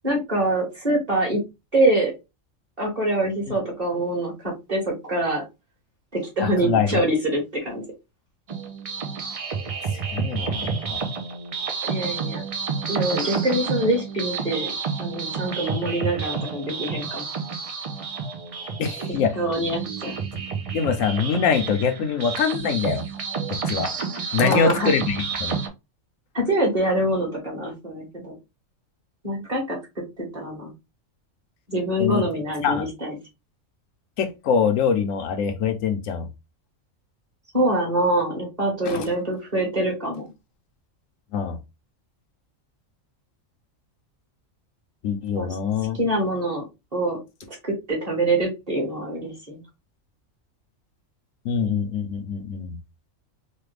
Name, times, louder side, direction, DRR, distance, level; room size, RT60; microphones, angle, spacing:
voice 1, 0.0-1.4 1.7-2.1 2.8-5.4 6.1-7.8 11.8-12.4 12.9-14.7 15.0-17.2 19.3-20.2 24.4-24.9 26.3-28.3 29.2-29.8 30.2-30.7 31.7-33.1 37.5-40.2 45.4-45.5 46.0-46.6 46.9-47.2 47.6-49.6, right 1 dB, 30° right, 1.4 m, -24 dB
voice 2, 6.4-7.0 9.9-11.0 18.8-19.4 20.7-23.0 23.5-23.9 24.3-25.6 32.0-32.2 32.6-32.9 34.2-36.3 38.9-39.1 41.3-41.6 45.0-46.0 51.4-52.8, left 6 dB, 80° left, 1.0 m, -24 dB
sound 1, 8.5-25.7, right 5 dB, 70° right, 0.3 m, -30 dB
3.3 x 2.2 x 3.2 m
omnidirectional pair, 1.4 m